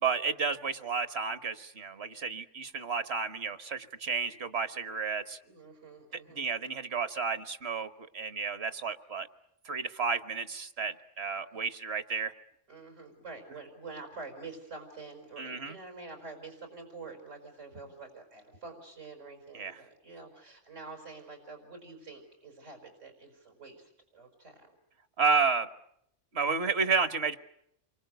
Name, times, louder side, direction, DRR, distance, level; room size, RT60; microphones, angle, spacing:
voice 1, 0.0-5.4 6.1-9.3 9.6-12.3 15.4-15.8 19.5-19.8 25.2-25.7 26.3-27.4, right 5 dB, 60° right, 11 dB, 1.5 m, -31 dB
voice 2, 5.4-6.5 11.5-11.6 12.7-24.7, right 3 dB, 90° right, 4 dB, 5.7 m, -47 dB
29.0 x 24.0 x 8.0 m, 0.72 s
omnidirectional pair, 1.2 m